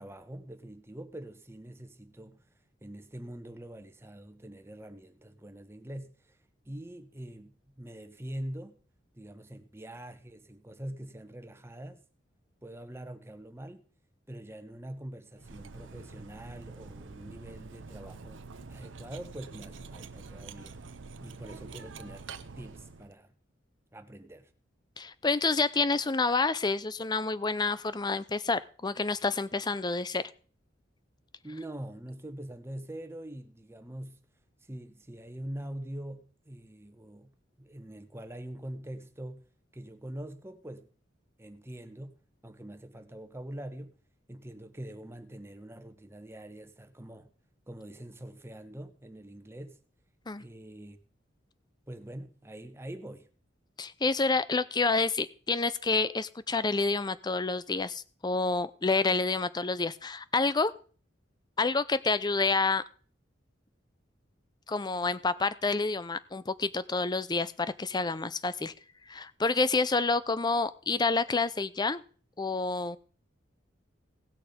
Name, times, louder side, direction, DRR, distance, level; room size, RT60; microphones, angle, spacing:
voice 1, 0.0-2.4 2.8-6.4 6.7-8.8 9.1-12.0 12.6-13.8 14.3-20.8 21.2-23.3 23.9-24.5 31.4-34.2 34.7-37.3 37.6-39.4 39.7-40.9 41.4-44.0 44.3-47.3 47.7-49.8 50.4-51.0 51.9-53.3, right 1 dB, 15° right, 1.1 m, -44 dB
Cutlery silverware, 15.4-23.1, right 4 dB, 85° right, 0.8 m, -46 dB
voice 2, 25.0-30.2 50.3-50.4 53.8-60.7 61.6-62.8 64.7-68.7 69.1-72.0 72.4-73.0, left 3 dB, 25° left, 0.6 m, -28 dB
18.0 x 6.6 x 5.1 m
head